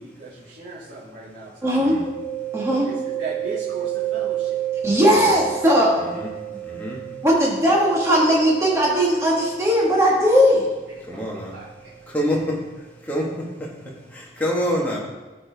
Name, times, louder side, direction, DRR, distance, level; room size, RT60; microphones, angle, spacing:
voice 1, 0.0-1.9 2.7-4.6 10.9-11.6, right 2 dB, 80° right, -9 dB, 1.8 m, -37 dB
voice 2, 1.6-1.9 2.5-2.9 4.8-6.0 7.2-10.7, equal, 15° right, -4 dB, 1.5 m, -18 dB
Mallet percussion, 2.1-11.6, right 12 dB, 30° left, 1.5 m, -32 dB
voice 3, 6.0-6.3 6.6-7.0 11.0-11.5 12.1-12.6 13.0-15.0, equal, 10° left, -4 dB, 1.4 m, -27 dB
13.0 x 4.4 x 3.4 m, 1.2 s
head